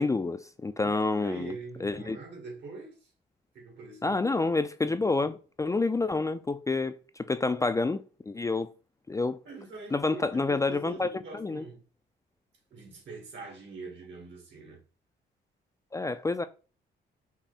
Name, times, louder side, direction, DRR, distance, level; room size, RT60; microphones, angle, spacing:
voice 1, 0.0-1.5 1.8-2.2 4.0-8.7 9.1-9.4 9.9-11.6 15.9-16.4, left 3 dB, 15° left, 0.3 m, -28 dB
voice 2, 0.8-3.1 3.5-4.4 9.4-11.8 12.7-14.8, right 3 dB, 70° right, 2.3 m, -44 dB
5.9 x 2.1 x 4.1 m
cardioid pair, 95°, 19 cm